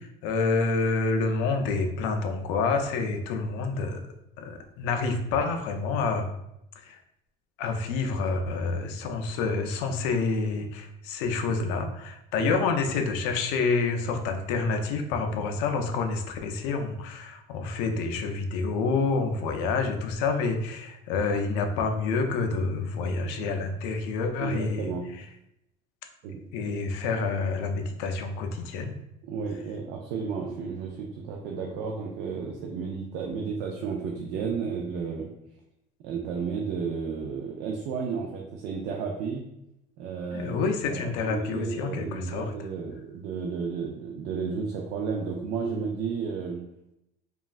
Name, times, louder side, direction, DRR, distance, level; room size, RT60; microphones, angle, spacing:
voice 1, 0.0-4.0 4.4-6.3 6.8-7.0 7.6-25.3 26.5-29.0 40.3-42.5, left 4 dB, 75° left, 5 dB, 0.4 m, -28 dB
voice 2, 24.4-25.1 26.2-26.7 29.2-35.3 36.0-39.4 40.0-40.6 40.9-46.6, right 5 dB, 60° right, 0 dB, 0.4 m, -32 dB
3.1 x 2.3 x 2.4 m, 0.84 s
cardioid pair, 160°, 19 cm